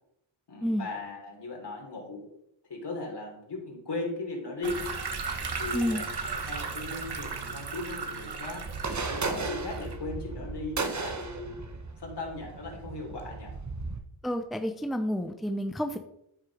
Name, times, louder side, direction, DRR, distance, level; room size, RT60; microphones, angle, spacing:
voice 1, 0.5-2.3 2.7-4.8 5.6-13.5, left 2 dB, 55° left, 0 dB, 3.9 m, -38 dB
sound 1, 4.6-9.9, right 4 dB, 50° right, 1.5 m, -36 dB
sound 2, 8.7-14.0, right 4 dB, 35° right, 1.2 m, -35 dB
voice 2, 14.2-16.0, equal, ahead, 6 dB, 0.8 m, -30 dB
13.5 x 4.5 x 5.0 m, 0.79 s
cardioid pair, 65°, 49 cm